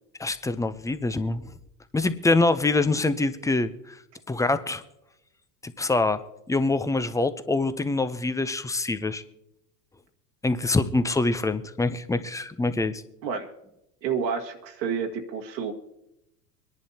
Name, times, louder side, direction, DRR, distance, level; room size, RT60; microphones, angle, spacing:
voice 1, 0.2-1.5 1.9-4.0 4.3-4.8 5.6-6.2 6.5-9.2 10.4-13.0, left 3 dB, 5° left, 12 dB, 0.5 m, -25 dB
voice 2, 14.0-15.7, right 6 dB, 80° right, 2 dB, 1.8 m, -29 dB
24.0 x 11.0 x 2.8 m, 0.86 s
hypercardioid pair, 95°, 49 cm